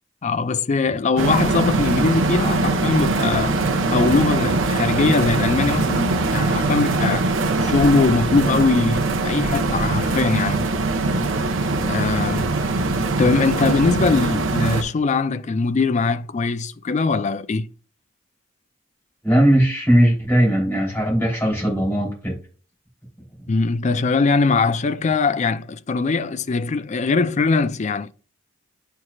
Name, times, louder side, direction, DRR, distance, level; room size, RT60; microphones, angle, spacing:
voice 1, 0.2-3.6 3.9-7.3 7.6-10.7 11.9-12.5 13.2-17.7 23.5-28.1, left 4 dB, 35° left, 0.4 m, -21 dB
sound 1, 1.2-14.8, right 3 dB, 75° right, 0.8 m, -22 dB
voice 2, 19.2-22.3, right 1 dB, 10° left, 3.3 m, -18 dB
9.7 x 4.6 x 2.4 m
head